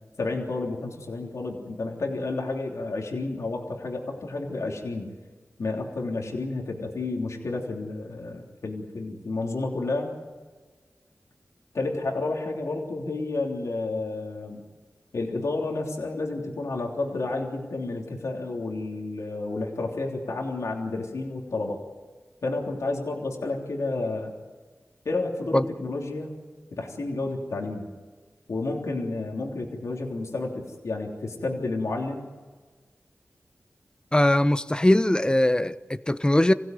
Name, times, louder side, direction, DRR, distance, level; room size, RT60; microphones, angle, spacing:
voice 1, 0.2-5.1 5.6-10.1 11.7-14.6 15.1-21.8 22.4-24.3 25.0-26.3 26.7-27.9 28.5-32.3, left 2 dB, 80° left, 0 dB, 3.3 m, -31 dB
voice 2, 34.1-36.5, left 1 dB, 15° left, 13 dB, 1.0 m, -21 dB
26.5 x 16.5 x 9.4 m, 1.4 s
cardioid pair, 45°, 5 cm